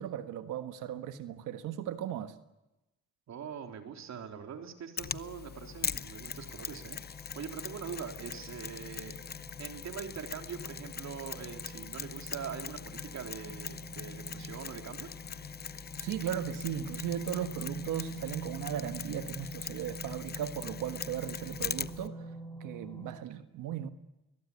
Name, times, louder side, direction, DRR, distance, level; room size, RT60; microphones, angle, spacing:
voice 1, 0.0-2.3 16.0-22.2 22.6-23.9, right 10 dB, 90° right, 9 dB, 1.6 m, -37 dB
voice 2, 3.3-7.0 7.4-9.1 9.6-15.1, right 7 dB, 65° right, 4 dB, 3.7 m, -43 dB
Mechanisms, 5.0-22.1, left 7 dB, 30° left, 0.8 m, -41 dB
sound 1, 5.5-23.1, right 2 dB, 5° left, 5.5 m, -47 dB
22.0 x 21.0 x 8.6 m, 0.96 s
cardioid pair, 90°, 30 cm